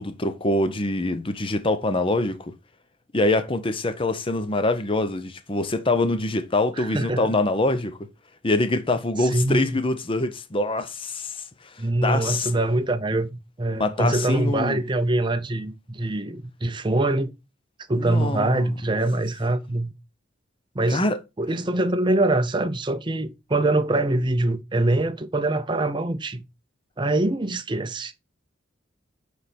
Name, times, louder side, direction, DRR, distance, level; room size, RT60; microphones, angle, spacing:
voice 1, 0.0-2.6 3.1-8.1 8.4-11.4 12.0-12.5 13.8-14.8 18.0-18.7 20.9-21.2, left 2 dB, 30° left, 0.7 m, -24 dB
voice 2, 6.8-7.2 9.2-9.7 11.8-17.3 17.9-19.9 20.7-21.0 21.4-26.4 27.0-28.1, right 2 dB, 25° right, 0.6 m, -24 dB
9.2 x 3.4 x 4.2 m
head